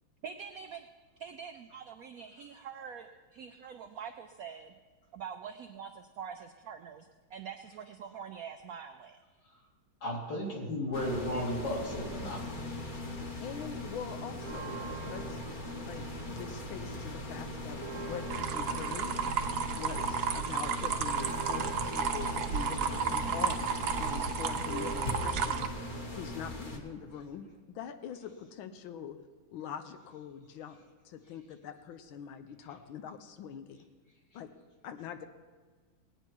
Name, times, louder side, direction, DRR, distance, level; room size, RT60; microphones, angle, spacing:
voice 1, 0.2-0.8 1.2-4.7 5.1-9.1 16.3-16.4, right 7 dB, 80° right, 7 dB, 0.8 m, -45 dB
voice 2, 10.0-12.7, left 1 dB, 65° left, -3 dB, 3.3 m, -35 dB
sound 1, 10.9-26.8, left 1 dB, 30° left, 1.0 m, -40 dB
voice 3, 13.4-15.4 15.8-19.4 19.7-23.7 24.0-25.7 26.1-29.2 29.5-30.8 31.0-33.8 34.3-34.5 34.8-35.3, left 8 dB, 90° left, 9 dB, 1.5 m, -43 dB
sound 2, 14.3-16.7 17.1-27.6, right 4 dB, 20° right, 0.7 m, -46 dB
sound 3, 18.3-25.7, right 7 dB, 65° right, 1.2 m, -33 dB
18.5 x 9.0 x 4.6 m, 1.4 s
omnidirectional pair, 2.2 m